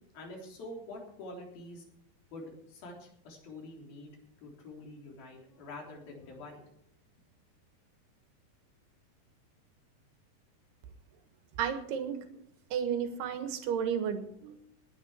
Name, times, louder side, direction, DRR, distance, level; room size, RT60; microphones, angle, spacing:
voice 1, 0.1-1.8 2.3-6.6, left 2 dB, 60° left, 0 dB, 5.4 m, -46 dB
voice 2, 11.6-12.2 12.7-14.6, right 8 dB, 75° right, 8 dB, 3.5 m, -32 dB
19.5 x 10.0 x 4.4 m, 0.72 s
omnidirectional pair, 4.7 m